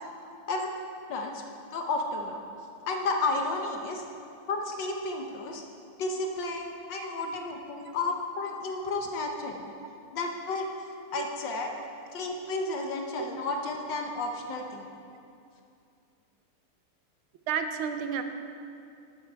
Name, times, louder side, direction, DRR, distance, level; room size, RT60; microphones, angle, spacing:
voice 1, 1.1-1.4 1.7-2.4 2.9-4.0 4.5-5.6 6.0-9.7 10.1-10.7 11.1-11.7 12.1-14.9, left 3 dB, 65° left, 3 dB, 1.3 m, -32 dB
voice 2, 17.5-18.2, right 7 dB, 75° right, 7 dB, 1.4 m, -31 dB
11.5 x 8.5 x 4.5 m, 2.5 s
omnidirectional pair, 2.4 m